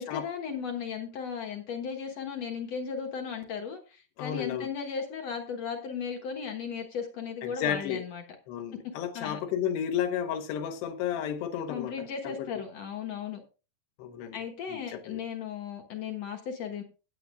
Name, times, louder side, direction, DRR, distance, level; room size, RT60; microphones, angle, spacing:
voice 1, 0.0-8.2 9.1-9.4 11.7-13.4 14.3-16.8, left 6 dB, 65° left, 1.6 m, -36 dB
voice 2, 4.2-4.7 7.4-8.0 8.5-12.5 14.0-14.4 14.7-15.2, left 9 dB, 85° left, 3.1 m, -32 dB
16.0 x 9.2 x 2.5 m
omnidirectional pair, 4.7 m